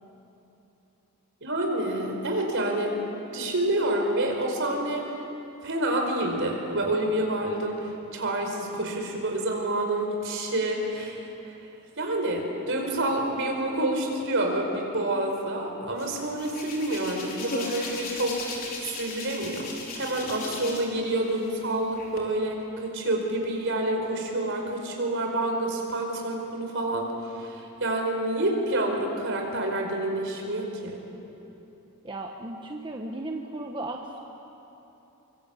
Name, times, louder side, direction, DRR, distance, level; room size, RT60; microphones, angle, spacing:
voice 1, 1.4-3.0 3.3-5.0 5.6-11.3 12.0-19.7 19.9-27.1 27.4-31.0, right 1 dB, 60° right, 1 dB, 4.9 m, -28 dB
Hands, 16.0-21.0 21.3-22.2, left 3 dB, 40° left, 4.6 m, -37 dB
voice 2, 32.0-34.2, right 2 dB, 20° right, 1 dB, 1.2 m, -35 dB
25.5 x 24.0 x 8.5 m, 3.0 s
head